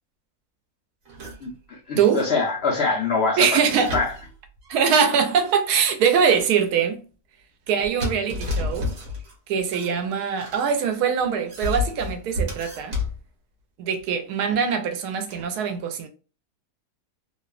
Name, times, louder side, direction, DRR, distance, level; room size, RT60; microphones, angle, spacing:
sound 1, 1.1-1.5 2.0-2.6 3.5-5.6 6.1-6.6 7.7-9.3 9.7-10.6 11.2-13.2 14.5-14.6 15.3-15.5, left 2 dB, 65° right, 1.3 m, -32 dB
voice 1, 1.4-3.6 3.9-4.1, left 4 dB, 60° left, 0.7 m, -24 dB
voice 2, 3.4-4.0 4.7-7.0 7.7-8.9 9.5-13.0 13.8-16.1, right 7 dB, 85° right, 1.1 m, -22 dB
2.9 x 2.1 x 2.3 m
omnidirectional pair, 1.6 m